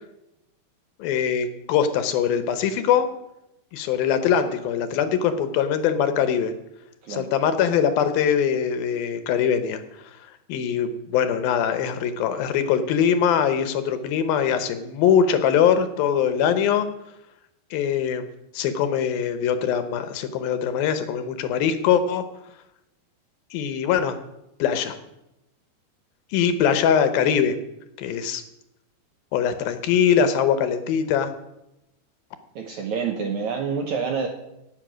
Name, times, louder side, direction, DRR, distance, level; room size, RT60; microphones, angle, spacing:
voice 1, 1.0-3.1 3.7-6.5 7.1-10.1 10.5-16.9 17.7-18.2 18.5-22.2 23.5-24.2 24.6-25.0 26.3-27.6 28.0-28.4 29.3-31.3, left 8 dB, 75° left, 10 dB, 2.6 m, -22 dB
voice 2, 32.6-34.3, right 6 dB, 70° right, 4 dB, 1.8 m, -27 dB
18.0 x 8.0 x 6.2 m, 0.89 s
omnidirectional pair, 4.6 m